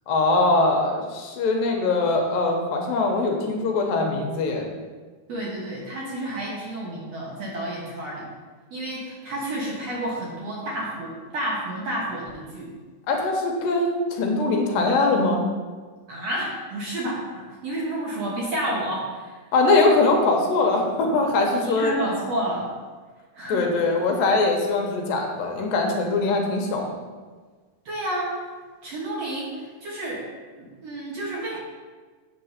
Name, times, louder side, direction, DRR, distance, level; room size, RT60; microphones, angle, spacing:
voice 1, 0.1-4.7 13.1-15.4 19.5-21.9 23.5-26.9, left 3 dB, 75° left, 1 dB, 2.6 m, -22 dB
voice 2, 5.3-8.3 8.7-12.7 16.1-19.4 21.5-22.7 23.3-23.7 27.9-28.4 28.8-30.3 30.6-31.6, right 1 dB, 60° right, -4 dB, 2.0 m, -30 dB
8.5 x 3.8 x 6.5 m, 1.4 s
omnidirectional pair, 4.1 m